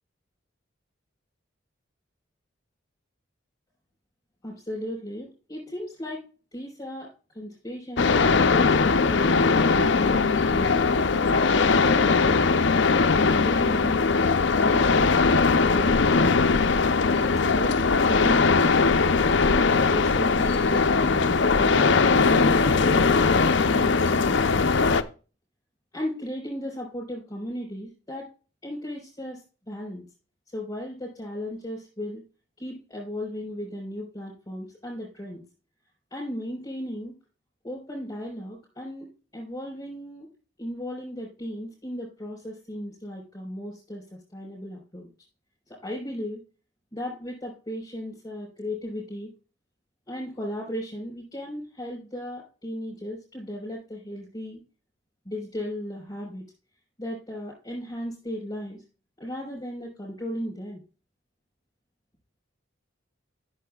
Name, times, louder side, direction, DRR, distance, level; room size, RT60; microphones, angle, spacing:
voice 1, 4.4-6.2 6.5-11.1 11.5-12.5 13.1-14.1 14.5-16.6 17.2-19.0 19.9-21.8 22.3-24.9 25.9-28.3 28.6-30.0 30.5-32.2 32.6-35.4 36.1-37.1 37.6-39.1 39.3-40.3 40.6-45.1 45.7-46.4 46.9-49.3 50.1-54.6 55.2-56.4 57.0-58.8 59.2-60.8, equal, 20° left, -4 dB, 4.4 m, -35 dB
sound 1, 8.0-25.0, left 4 dB, 65° left, 0.6 m, -20 dB
13.5 x 6.9 x 2.3 m, 0.35 s
head